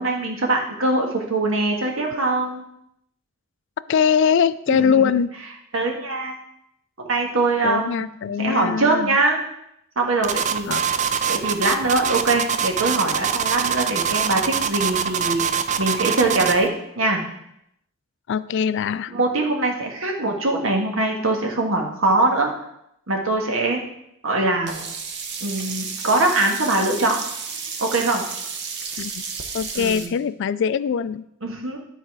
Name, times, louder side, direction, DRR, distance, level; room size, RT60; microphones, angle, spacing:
voice 1, 0.0-2.6 4.8-5.1 5.7-6.3 7.0-8.1 8.4-9.4 9.9-10.7 11.3-17.2 19.1-22.5 23.1-23.8 24.2-24.8 25.4-27.2 27.8-28.2 29.7-30.1 31.4-31.8, right 2 dB, 80° right, 1 dB, 1.6 m, -22 dB
voice 2, 3.9-5.3 7.6-9.2 10.7-10.8 18.3-19.1 29.0-29.1 29.5-31.2, left 7 dB, 60° left, 15 dB, 0.3 m, -22 dB
sound 1, 10.2-16.7, right 7 dB, 35° right, 0.4 m, -24 dB
Sink (filling or washing), 24.7-30.1, right 5 dB, 60° right, 0.9 m, -32 dB
11.0 x 4.1 x 4.7 m, 0.77 s
head